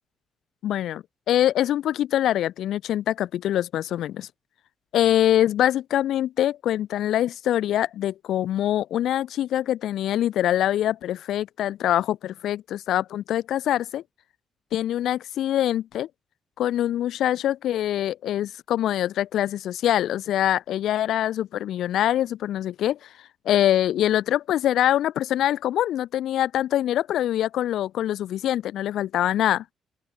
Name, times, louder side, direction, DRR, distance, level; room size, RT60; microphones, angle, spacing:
voice 1, 0.6-4.3 4.9-14.0 14.7-16.1 16.6-23.1 23.4-29.6, left 12 dB, 75° left, 1.7 m, -24 dB
open air
cardioid pair, 90°, 0 cm